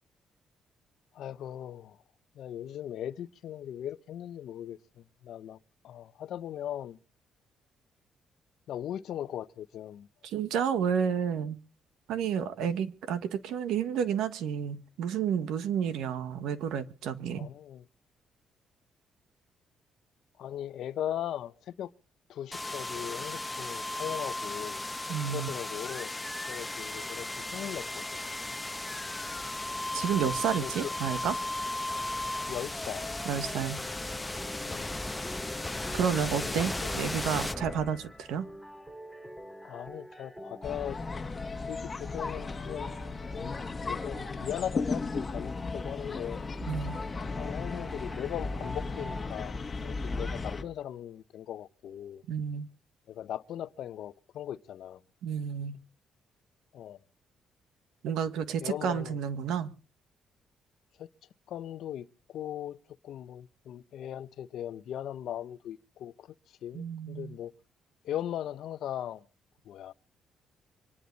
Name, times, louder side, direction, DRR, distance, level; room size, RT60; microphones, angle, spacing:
voice 1, 1.1-2.0 2.3-5.6 5.8-7.0 8.7-10.1 17.4-17.8 20.4-21.9 22.3-24.8 25.3-26.2 26.5-28.2 30.5-30.9 32.5-33.1 34.6-35.0 36.4-36.9 39.6-41.0 41.6-42.9 43.4-46.4 47.3-52.2 53.1-55.0 56.7-57.0 58.6-59.2 61.0-61.1 61.5-62.8 63.0-66.3 66.6-67.5 68.0-69.2 69.6-69.9, left 11 dB, 75° left, 0.7 m, -39 dB
voice 2, 10.2-11.6 12.1-17.5 25.1-25.5 29.9-31.3 33.2-33.8 35.9-38.5 46.7-47.0 52.3-52.7 55.2-55.8 58.0-59.7 66.7-67.3, right 8 dB, 85° right, 1.4 m, -31 dB
sound 1, 22.5-38.3, left 2 dB, 15° left, 1.0 m, -36 dB
sound 2, 33.4-49.4, left 1 dB, 5° right, 2.3 m, -46 dB
sound 3, 40.6-50.6, left 4 dB, 30° left, 1.5 m, -36 dB
25.5 x 10.5 x 4.0 m
cardioid pair, 90°, 0 cm